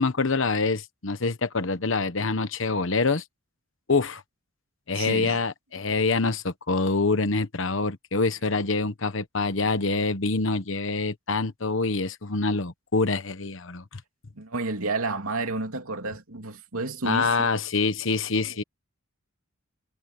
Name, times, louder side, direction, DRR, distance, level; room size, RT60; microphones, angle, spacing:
voice 1, 0.0-3.2 3.9-4.2 4.9-14.0 17.0-18.6, left 3 dB, 60° left, 1.1 m, -25 dB
voice 2, 4.9-5.4 14.4-17.5 18.4-18.6, right 3 dB, 85° right, 2.8 m, -31 dB
head